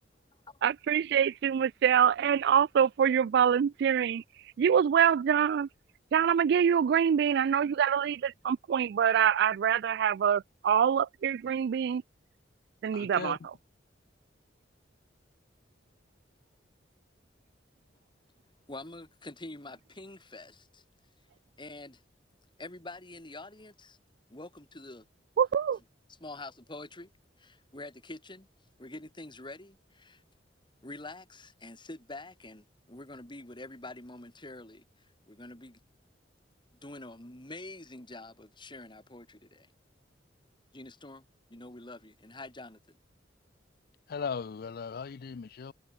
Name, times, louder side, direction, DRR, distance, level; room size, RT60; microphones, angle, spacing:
voice 1, 0.6-4.2 4.6-5.7 6.1-12.0 12.8-13.4 25.4-25.8, right 8 dB, 65° right, 0.3 m, -25 dB
voice 2, 12.9-13.4 44.1-45.7, left 5 dB, 55° left, 0.4 m, -37 dB
voice 3, 18.7-20.8 21.6-22.0 22.6-24.0 24.3-25.1 26.2-27.1 27.4-28.5 28.8-30.2 30.8-35.8 36.8-39.7 40.7-41.2 41.5-43.0, left 2 dB, 25° left, 3.8 m, -46 dB
head